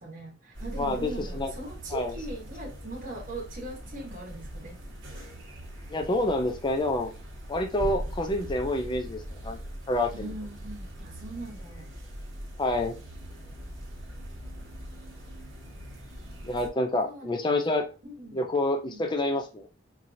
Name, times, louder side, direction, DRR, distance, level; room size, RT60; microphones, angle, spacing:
voice 1, 0.0-4.8 10.1-12.0 16.9-17.3 18.0-18.4 18.9-19.0, right 1 dB, 45° right, 1.0 m, -40 dB
sound 1, 0.5-16.7, equal, 75° right, 1.2 m, -41 dB
voice 2, 0.8-1.5 1.9-2.1 5.9-7.1 7.5-9.6 9.9-10.3 12.6-12.9 16.4-17.9 18.3-19.7, left 1 dB, 25° left, 0.5 m, -28 dB
4.6 x 2.8 x 2.6 m
head